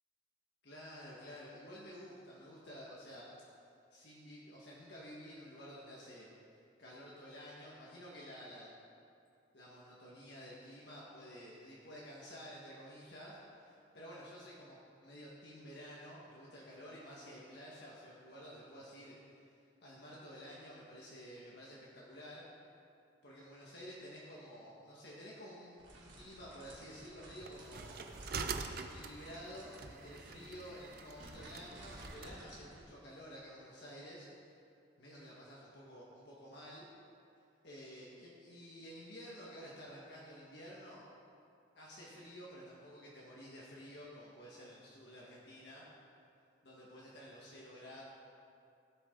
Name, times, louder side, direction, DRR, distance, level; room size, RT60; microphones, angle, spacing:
voice 1, 0.6-3.3 3.9-6.3 6.8-8.8 9.5-19.4 19.8-22.5 23.2-34.3 35.0-36.9 37.6-41.0 41.8-45.9 46.6-48.0, equal, 60° left, -6 dB, 1.7 m, -51 dB
sound 1, 25.8-32.8, right 1 dB, 65° right, 3.1 m, -55 dB
sound 2, 27.4-32.3, right 5 dB, 50° right, 0.6 m, -45 dB
16.5 x 8.4 x 3.9 m, 2.5 s
head